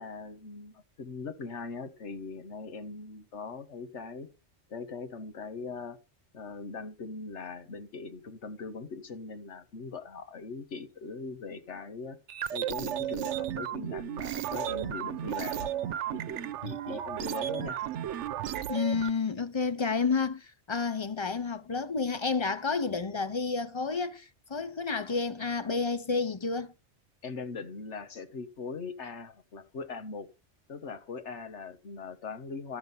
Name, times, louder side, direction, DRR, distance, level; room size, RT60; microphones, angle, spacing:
voice 1, 0.0-4.3 4.7-6.0 6.3-12.2 12.5-15.7 16.1-17.8 27.2-30.3 30.7-32.8, left 4 dB, 70° left, 1.5 m, -40 dB
sound 1, 12.3-19.1, right 11 dB, 75° right, 1.0 m, -34 dB
voice 2, 18.7-26.7, left 4 dB, 35° left, 0.4 m, -30 dB
13.0 x 6.0 x 5.4 m
omnidirectional pair, 1.2 m